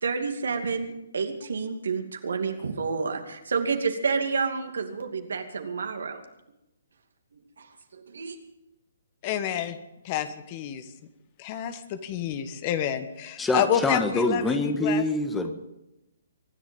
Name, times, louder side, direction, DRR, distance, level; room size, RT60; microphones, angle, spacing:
voice 1, 0.0-6.2 7.6-7.7 7.9-8.4, right 5 dB, 70° right, 5 dB, 2.6 m, -29 dB
voice 2, 9.2-9.8 10.0-10.8 11.4-15.0, left 10 dB, 35° left, 11 dB, 1.4 m, -29 dB
voice 3, 13.4-15.5, left 2 dB, 10° left, 7 dB, 1.7 m, -25 dB
24.5 x 10.5 x 5.4 m, 0.90 s
figure-of-eight pair, 135°, 0 cm